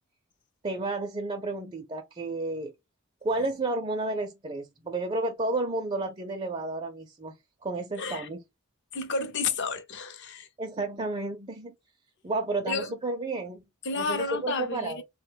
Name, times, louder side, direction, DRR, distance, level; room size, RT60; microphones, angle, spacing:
voice 1, 0.6-2.7 3.2-7.3 7.6-8.4 10.6-11.7 12.2-13.6 14.0-15.0, right 2 dB, 25° right, 0.4 m, -31 dB
voice 2, 8.0-8.3 8.9-10.5 12.6-12.9 13.8-15.0, left 4 dB, 55° left, 0.6 m, -31 dB
3.7 x 2.2 x 3.3 m
head